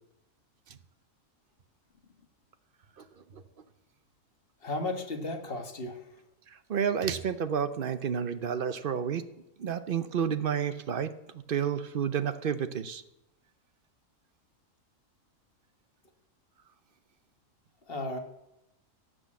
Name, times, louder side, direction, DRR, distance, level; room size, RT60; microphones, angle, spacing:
voice 1, 4.6-6.0 17.9-18.2, left 2 dB, 45° left, 4 dB, 1.7 m, -34 dB
voice 2, 6.5-9.2 9.6-13.0, right 7 dB, 50° right, 12 dB, 0.8 m, -30 dB
16.0 x 6.3 x 7.5 m, 0.89 s
omnidirectional pair, 1.4 m